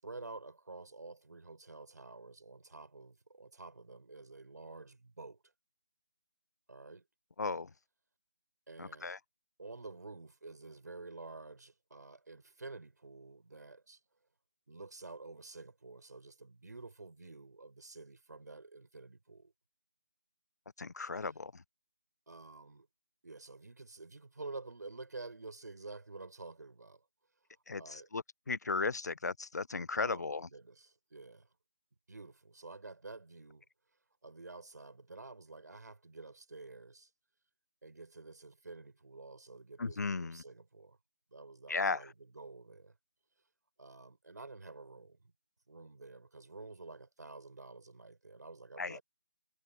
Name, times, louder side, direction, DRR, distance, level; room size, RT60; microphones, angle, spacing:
voice 1, 0.0-5.5 6.7-7.1 8.7-9.2 9.6-14.0 14.7-19.5 22.3-22.9 23.2-27.0 27.8-28.1 30.0-31.5 32.1-33.6 34.2-37.1 37.8-41.0 41.3-43.0 43.8-45.2 45.7-49.0, right 3 dB, 60° right, 5.3 m, -50 dB
voice 2, 7.4-7.7 8.8-9.2 20.8-21.6 27.7-30.5 39.8-40.4 41.7-42.1 48.8-49.0, left 4 dB, 55° left, 0.4 m, -36 dB
figure-of-eight pair, 180°, 11 cm